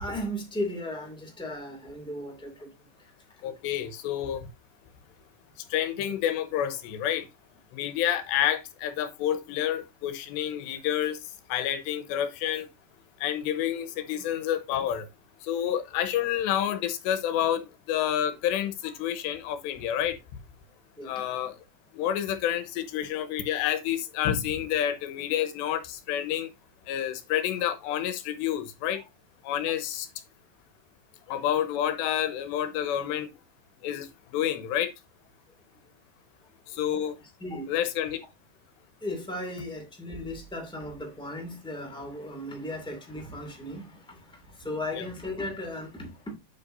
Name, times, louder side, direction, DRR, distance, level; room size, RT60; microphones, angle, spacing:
voice 1, 0.0-2.7 21.0-21.1 29.0-29.1 37.4-37.7 39.0-44.2 44.6-46.1, left 1 dB, 5° left, 0.4 m, -36 dB
voice 2, 3.4-4.5 5.7-7.3 7.7-11.2 11.5-12.7 13.2-15.1 15.4-20.2 21.0-21.6 22.0-26.5 26.9-29.0 29.4-30.1 31.3-33.3 33.8-34.1 34.3-34.9 36.7-37.2 37.7-38.2 44.9-45.0, left 10 dB, 80° left, 3.1 m, -29 dB
9.0 x 8.1 x 2.7 m
omnidirectional pair, 5.2 m